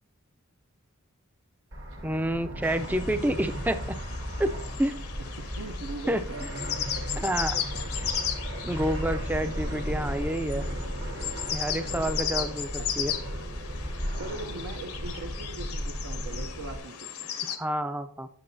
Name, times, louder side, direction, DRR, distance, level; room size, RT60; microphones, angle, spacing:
Fixed-wing aircraft airplane, 1.7-16.8, equal, 60° right, 1.3 m, -35 dB
voice 1, 2.0-4.0 4.4-5.0 6.1-6.2 7.2-7.6 8.6-10.6 11.5-13.1 17.5-18.3, right 1 dB, 10° right, 10 dB, 0.3 m, -29 dB
sound 1, 2.6-17.6, left 8 dB, 80° left, 0.7 m, -36 dB
voice 2, 5.4-8.1 13.0-13.1 14.2-17.3, right 3 dB, 75° right, 4 dB, 0.6 m, -41 dB
8.7 x 6.5 x 2.6 m, 0.63 s
head